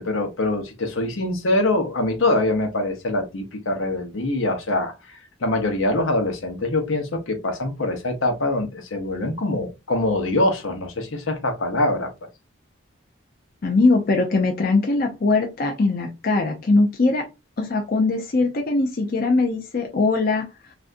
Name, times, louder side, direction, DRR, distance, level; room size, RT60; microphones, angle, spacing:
voice 1, 0.0-12.1, left 2 dB, 80° left, 0.8 m, -24 dB
voice 2, 13.6-17.3 17.6-20.5, left 3 dB, 45° left, 0.5 m, -21 dB
3.3 x 2.5 x 2.5 m
head